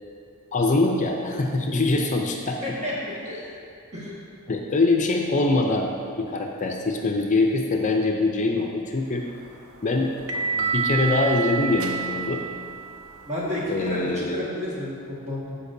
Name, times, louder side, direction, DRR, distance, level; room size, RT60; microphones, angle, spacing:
voice 1, 0.5-2.6 3.4-3.6 4.5-9.3 9.8-10.1 10.5-12.4 13.7-14.4, left 2 dB, 35° left, 1 dB, 0.5 m, -23 dB
voice 2, 2.6-3.4 3.9-4.2 13.2-15.6, left 1 dB, 35° right, -6 dB, 1.8 m, -31 dB
sound 1, 9.2-14.0, right 6 dB, 65° right, 0.7 m, -30 dB
13.0 x 5.1 x 2.7 m, 2.6 s
head